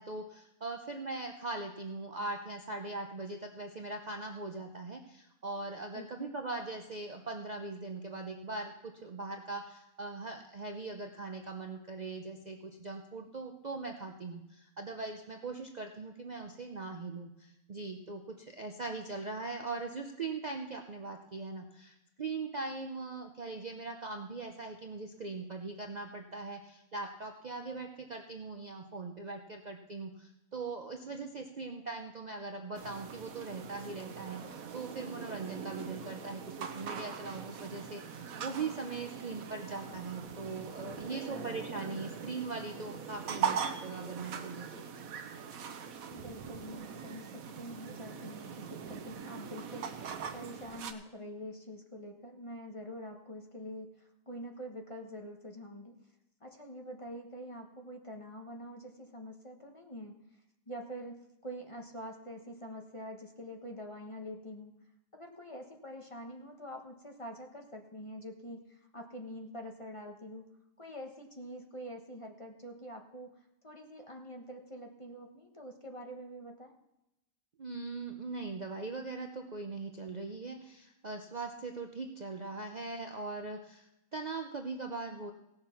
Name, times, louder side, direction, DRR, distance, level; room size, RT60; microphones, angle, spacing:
voice 1, 0.0-45.1 77.6-85.3, right 3 dB, 40° right, 4 dB, 0.7 m, -41 dB
voice 2, 5.9-6.3 41.1-41.5 46.1-56.0 56.4-60.2 60.7-64.7 65.1-70.5 70.8-73.3 73.6-76.7, equal, 25° left, 2 dB, 1.1 m, -46 dB
sound 1, 32.7-50.9, right 7 dB, 90° right, 1.3 m, -41 dB
17.0 x 6.8 x 5.8 m, 0.89 s
omnidirectional pair, 1.4 m